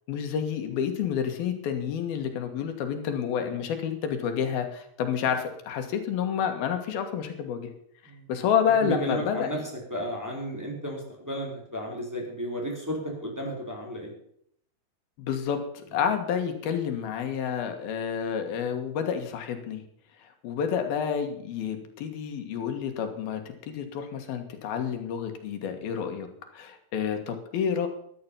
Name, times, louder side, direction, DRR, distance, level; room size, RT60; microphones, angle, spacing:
voice 1, 0.1-7.7 8.3-9.6 15.2-15.6 15.9-19.8 20.4-23.4 23.7-26.3 26.5-27.9, left 8 dB, 85° left, 6 dB, 3.6 m, -29 dB
voice 2, 8.8-9.6 9.9-14.1, equal, 5° right, -2 dB, 4.2 m, -33 dB
14.0 x 11.0 x 5.7 m, 0.69 s
omnidirectional pair, 4.2 m